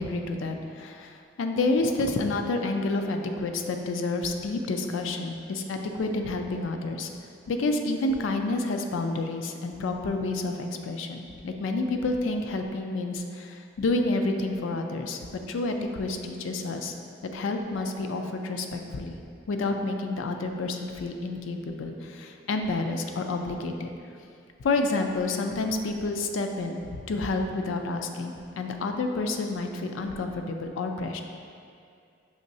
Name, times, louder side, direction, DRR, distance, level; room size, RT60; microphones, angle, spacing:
voice 1, 0.0-7.1 7.5-16.9 17.2-19.1 19.5-23.9 24.6-31.2, left 2 dB, 80° left, 5 dB, 0.4 m, -29 dB
6.3 x 3.0 x 2.7 m, 2.4 s
head